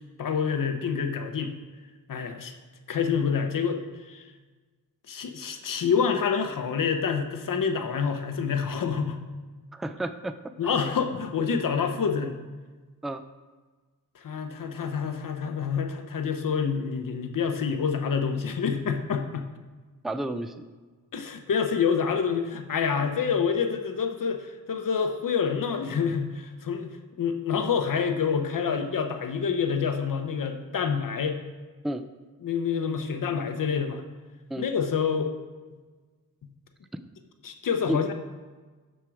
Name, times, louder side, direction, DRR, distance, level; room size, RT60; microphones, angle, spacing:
voice 1, 0.2-1.5 2.1-2.5 2.9-3.8 4.0-4.2 5.1-9.2 10.6-12.4 14.1-19.5 21.1-26.9 27.2-31.4 32.4-34.0 34.6-35.3 37.4-38.1, left 6 dB, 70° left, 6 dB, 1.0 m, -27 dB
voice 2, 9.7-10.3 13.0-13.2 20.0-20.6 31.8-32.0 34.5-34.7 36.9-37.0 37.9-38.0, right 1 dB, ahead, 10 dB, 0.4 m, -31 dB
12.5 x 4.5 x 4.9 m, 1.3 s
wide cardioid pair, 100°, 34 cm